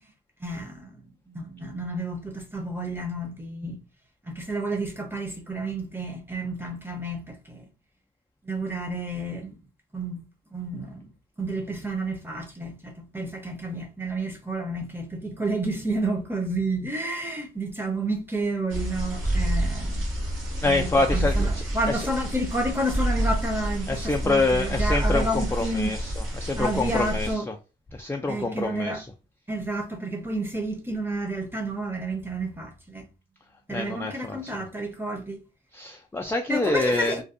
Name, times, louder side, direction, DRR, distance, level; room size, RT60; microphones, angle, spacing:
voice 1, 0.4-1.0 1.3-3.8 4.3-7.7 8.4-9.6 9.9-11.1 11.4-20.0 20.6-26.0 26.6-27.5 28.3-29.0 29.5-33.1 33.7-35.4 36.5-37.2, right 2 dB, 10° right, 0.7 m, -30 dB
sound 1, 18.7-27.3, equal, 75° right, 1.3 m, -32 dB
sound 2, 19.2-24.4 24.7-26.4, right 2 dB, 45° right, 1.1 m, -28 dB
voice 2, 20.6-22.1 23.9-26.1 26.4-27.5 27.9-29.1 33.7-34.6 35.7-37.2, left 3 dB, 10° left, 0.3 m, -26 dB
2.5 x 2.2 x 2.4 m
cardioid pair, 80°, 20 cm